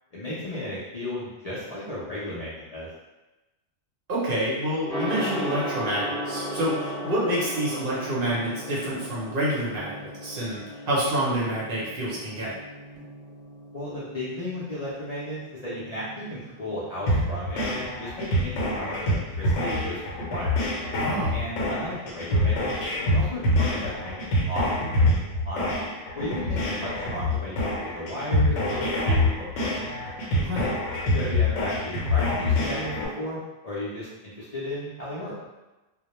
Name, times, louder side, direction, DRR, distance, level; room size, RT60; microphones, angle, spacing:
voice 1, 0.1-2.9 13.7-20.6 21.3-22.7 23.1-24.7 25.4-25.9 26.1-27.6 27.9-29.8 31.1-33.4 33.6-35.3, left 1 dB, 55° left, -9 dB, 0.4 m, -34 dB
voice 2, 4.1-12.6 21.0-21.4 30.3-30.8, right 1 dB, 55° right, -7 dB, 0.7 m, -28 dB
Gong, 4.9-23.9, equal, 5° left, 0.8 m, -38 dB
sound 1, 17.1-33.1, left 1 dB, 75° left, 0.9 m, -26 dB
2.1 x 2.1 x 2.9 m, 1.1 s
omnidirectional pair, 1.3 m